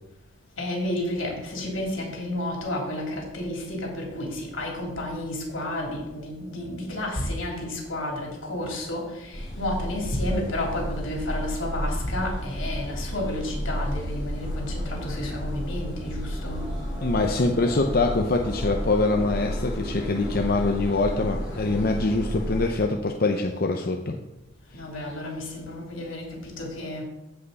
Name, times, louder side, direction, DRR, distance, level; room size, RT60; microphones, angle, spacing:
voice 1, 0.6-16.6 24.7-27.0, left 1 dB, 85° left, -1 dB, 3.2 m, -31 dB
sound 1, 9.3-22.7, equal, 20° left, 4.1 m, -32 dB
voice 2, 17.0-24.2, left 3 dB, 50° left, 3 dB, 0.7 m, -24 dB
15.0 x 5.5 x 4.1 m, 0.95 s
head